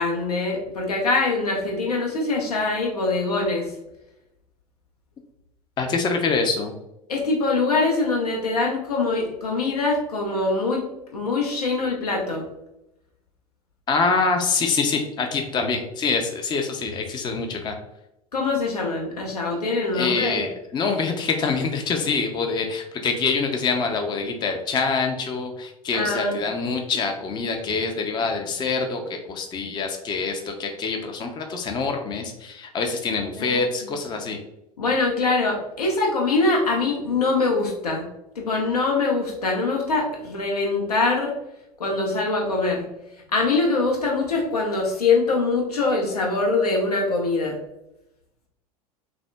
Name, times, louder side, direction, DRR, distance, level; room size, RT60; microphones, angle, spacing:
voice 1, 0.0-3.7 7.1-10.8 11.1-12.5 18.3-20.4 25.9-26.4 33.4-33.9 34.8-38.1 38.4-41.3 41.8-42.8 43.3-47.6, left 3 dB, 80° left, 0 dB, 0.8 m, -23 dB
voice 2, 5.8-6.7 13.9-17.8 19.9-34.4, left 4 dB, 25° left, 5 dB, 0.5 m, -25 dB
5.9 x 2.0 x 2.2 m, 0.87 s
figure-of-eight pair, 75°, 19 cm